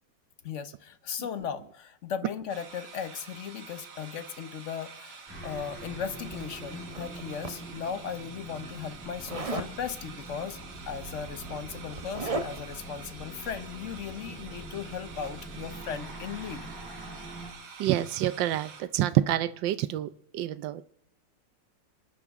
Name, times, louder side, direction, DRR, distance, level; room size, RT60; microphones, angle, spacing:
voice 1, 0.4-10.6 10.9-16.7, left 7 dB, 55° left, 1.0 m, -37 dB
sound 1, 2.5-18.8, right 5 dB, 65° right, 1.9 m, -48 dB
sound 2, 5.3-17.5, right 1 dB, 5° left, 5.9 m, -44 dB
Zipper (clothing), 6.3-7.9 9.3-9.7 10.9-11.0 11.3-12.8, right 3 dB, 30° right, 0.7 m, -37 dB
voice 2, 17.8-20.8, right 13 dB, 85° right, 1.4 m, -27 dB
28.0 x 10.0 x 3.6 m
omnidirectional pair, 2.0 m